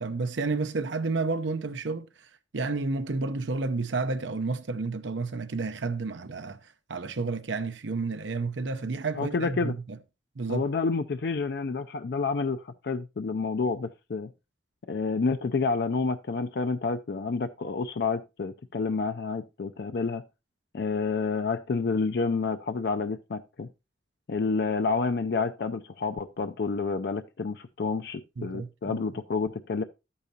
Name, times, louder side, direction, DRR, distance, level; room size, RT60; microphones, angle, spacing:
voice 1, 0.0-2.3 2.5-6.6 6.9-10.0 10.4-10.6 28.4-29.0, right 3 dB, 80° right, 0.7 m, -31 dB
voice 2, 9.2-9.8 10.5-14.3 14.9-20.2 20.7-23.7 24.3-29.8, left 4 dB, 60° left, 0.4 m, -29 dB
11.5 x 8.6 x 2.8 m
head